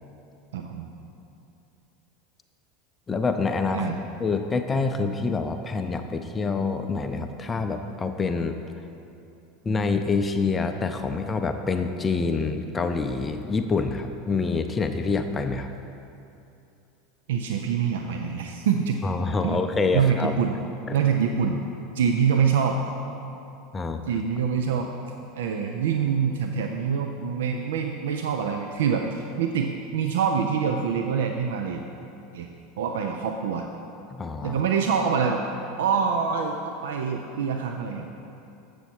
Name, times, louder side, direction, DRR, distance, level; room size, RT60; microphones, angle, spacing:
voice 1, 0.5-0.9 3.7-4.0 17.3-19.0 19.4-19.6 19.9-20.6 20.9-21.6 21.9-22.8 24.1-24.9 25.4-31.8 32.3-32.5 32.8-33.7 34.4-35.4 35.8-38.1, right 6 dB, 75° right, 3 dB, 0.4 m, -25 dB
voice 2, 3.1-3.9 4.2-8.6 9.6-15.7 19.0-20.3 20.9-21.0 23.7-24.0 34.2-34.6, left 4 dB, 20° left, 7 dB, 0.4 m, -26 dB
8.0 x 6.3 x 4.3 m, 2.7 s
hypercardioid pair, 85°, 0 cm